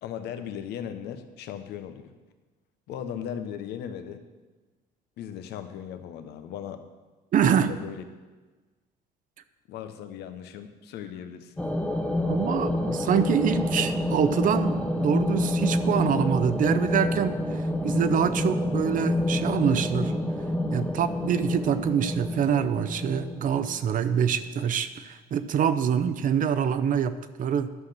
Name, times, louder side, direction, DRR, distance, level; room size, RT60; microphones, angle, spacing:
voice 1, 0.0-2.1 2.9-4.2 5.2-6.8 7.5-8.0 9.7-11.5, left 9 dB, 80° left, 9 dB, 0.9 m, -37 dB
voice 2, 7.3-7.7 12.2-17.4 17.8-20.1 20.7-27.7, right 8 dB, 50° right, 12 dB, 0.7 m, -25 dB
sound 1, 11.6-24.1, left 1 dB, 5° left, 0.7 m, -28 dB
11.5 x 5.8 x 6.7 m, 1.3 s
cardioid pair, 110°, 17 cm